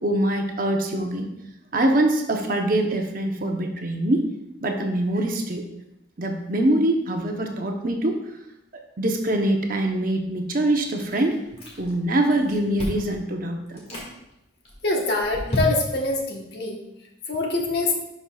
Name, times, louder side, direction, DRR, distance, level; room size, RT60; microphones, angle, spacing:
voice 1, 0.0-1.3 1.7-4.3 4.6-5.6 6.2-8.2 9.0-11.4 11.8-13.8, right 1 dB, 45° right, 3 dB, 0.8 m, -23 dB
Chewing mastication, 11.1-12.0 12.3-13.1 13.7-14.1 14.7-16.1, left 1 dB, 30° left, 1.8 m, -32 dB
voice 2, 14.8-16.8 17.3-17.9, left 2 dB, 50° left, 0 dB, 1.2 m, -24 dB
11.0 x 5.6 x 2.3 m, 0.85 s
head